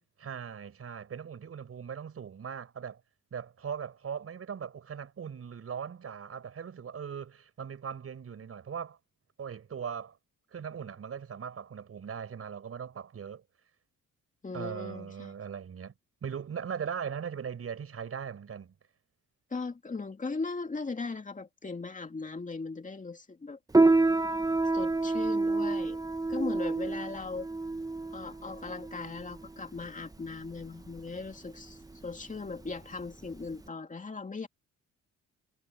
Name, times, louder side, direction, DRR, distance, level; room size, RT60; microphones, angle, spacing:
voice 1, 0.2-3.0 3.3-9.0 9.4-10.2 10.5-13.4 14.5-15.9 16.2-18.7, right 7 dB, 50° right, 5.3 m, -39 dB
voice 2, 14.4-15.3 19.5-23.6 24.7-26.0 26.3-27.5 28.1-34.5, left 4 dB, 25° left, 2.5 m, -38 dB
Piano, 23.7-33.7, right 3 dB, 10° right, 1.2 m, -29 dB
cardioid pair, 90°, 30 cm